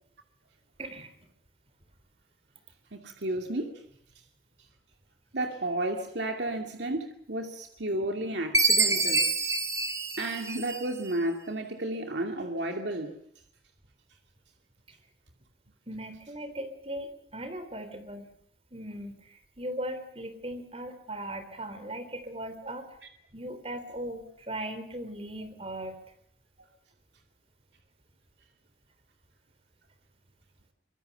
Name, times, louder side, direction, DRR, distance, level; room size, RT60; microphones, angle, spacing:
voice 1, 0.8-1.1 15.9-18.3 18.7-22.9 23.3-26.0, right 1 dB, 30° right, 3.4 m, -38 dB
voice 2, 2.9-3.8 5.3-9.3 10.2-13.2, right 1 dB, 75° right, 2.4 m, -32 dB
Chime, 8.5-11.1, right 3 dB, 15° right, 1.8 m, -26 dB
24.5 x 23.0 x 6.8 m
head